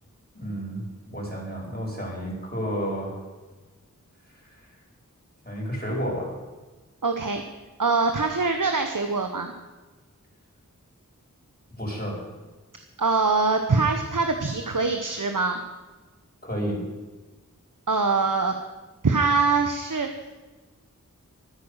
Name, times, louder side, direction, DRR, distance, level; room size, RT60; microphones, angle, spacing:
voice 1, 0.3-0.8 1.1-3.2 4.5-4.6 5.4-6.4 11.8-12.2 16.4-16.8, equal, 30° left, -3 dB, 5.2 m, -31 dB
voice 2, 7.0-7.4 7.8-9.5 13.0-15.6 17.9-18.6 19.0-20.1, right 4 dB, 70° right, 5 dB, 1.1 m, -23 dB
13.5 x 9.7 x 6.6 m, 1.3 s
wide cardioid pair, 40°, 33 cm